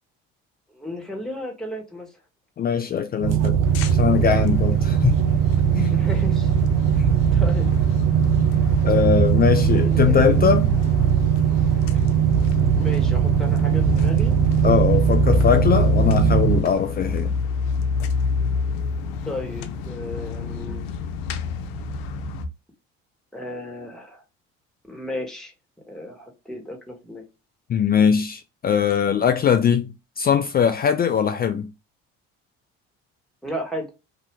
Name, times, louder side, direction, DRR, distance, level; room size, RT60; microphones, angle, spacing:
voice 1, 0.7-2.1 5.9-6.5 7.0-7.1 7.3-7.7 9.6-10.2 11.9-12.0 12.7-14.3 19.2-20.9 23.3-24.2 24.8-25.5 25.9-27.2 33.4-33.9, left 1 dB, ahead, 1.4 m, -34 dB
voice 2, 2.6-3.6 3.9-5.2 5.7-6.0 7.0-7.1 8.8-10.7 14.6-17.3 27.7-31.7, left 7 dB, 30° left, 0.4 m, -21 dB
sound 1, 3.2-16.6, right 9 dB, 55° right, 0.7 m, -20 dB
sound 2, 3.6-22.5, left 4 dB, 80° left, 0.6 m, -28 dB
2.8 x 2.5 x 3.3 m
supercardioid pair, 75°, 30 cm